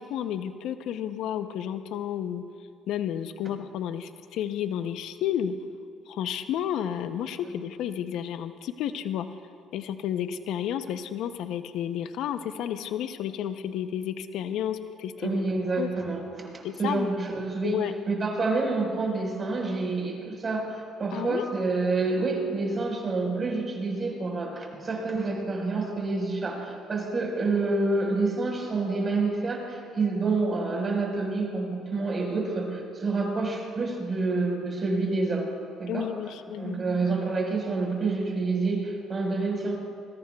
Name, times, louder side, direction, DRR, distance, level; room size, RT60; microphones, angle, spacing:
voice 1, 0.0-2.4 2.9-5.6 6.1-9.3 9.7-15.5 15.8-15.9 16.6-17.1 17.6-17.9 21.1-21.5 35.9-36.8, left 10 dB, 75° left, 10 dB, 0.6 m, -31 dB
voice 2, 15.2-35.5 35.8-36.1 36.6-39.8, right 3 dB, 35° right, 0 dB, 4.5 m, -28 dB
21.5 x 21.0 x 2.3 m, 2.3 s
supercardioid pair, 80°, 0 cm